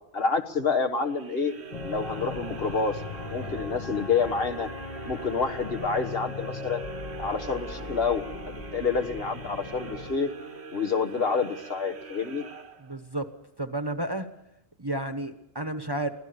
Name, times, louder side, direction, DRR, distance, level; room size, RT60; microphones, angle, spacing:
voice 1, 0.1-1.5 1.8-3.0 3.3-4.7 5.0-6.8 7.2-10.3 10.7-12.4, left 5 dB, 60° left, 6 dB, 1.7 m, -28 dB
sound 1, 0.9-13.2, right 5 dB, 75° right, 1.5 m, -43 dB
sound 2, 1.7-10.2, left 3 dB, 35° left, 1.2 m, -39 dB
voice 2, 12.8-13.3 13.6-14.3 14.8-16.1, right 1 dB, 25° right, 8 dB, 1.1 m, -31 dB
24.0 x 16.5 x 6.9 m, 0.85 s
omnidirectional pair, 1.1 m